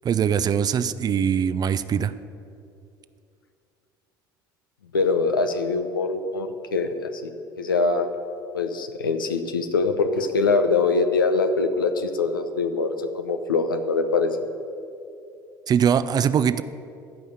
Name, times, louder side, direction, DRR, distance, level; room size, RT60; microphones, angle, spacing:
voice 1, 0.0-2.1 15.7-16.6, right 8 dB, 35° right, 14 dB, 0.6 m, -22 dB
voice 2, 4.9-7.3 7.6-8.1 8.5-14.4, left 4 dB, 85° left, 7 dB, 0.9 m, -23 dB
15.5 x 5.5 x 8.9 m, 2.6 s
figure-of-eight pair, 65°, 11 cm